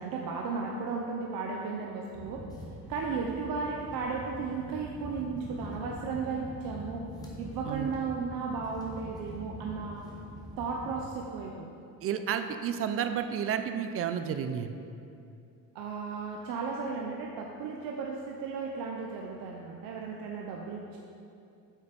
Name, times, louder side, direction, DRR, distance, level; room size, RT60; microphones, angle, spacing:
voice 1, 0.0-2.4 2.9-7.0 7.4-10.0 10.6-11.7 15.7-21.0, right 4 dB, 70° right, -1 dB, 0.8 m, -35 dB
sound 1, 2.1-11.0, equal, 10° left, 1.1 m, -44 dB
voice 2, 12.0-14.8, right 8 dB, 40° right, 9 dB, 0.4 m, -31 dB
8.0 x 5.6 x 5.2 m, 2.5 s
cardioid pair, 155°, 36 cm